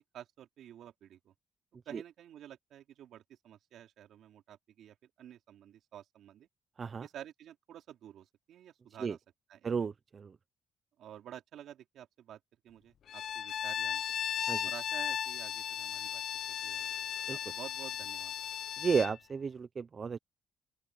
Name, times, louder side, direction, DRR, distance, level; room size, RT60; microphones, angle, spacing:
voice 1, 0.0-1.3 1.9-6.5 7.0-9.2 9.5-9.9 11.0-14.0 14.6-16.2 16.6-17.0 17.3-18.3, right 10 dB, 75° right, 3.8 m, -51 dB
voice 2, 9.6-10.4 14.5-14.7 17.3-17.4 18.8-20.2, right 5 dB, 40° right, 0.9 m, -33 dB
Bowed string instrument, 13.1-19.2, left 9 dB, 65° left, 0.3 m, -36 dB
open air
cardioid pair, 90°, 0 cm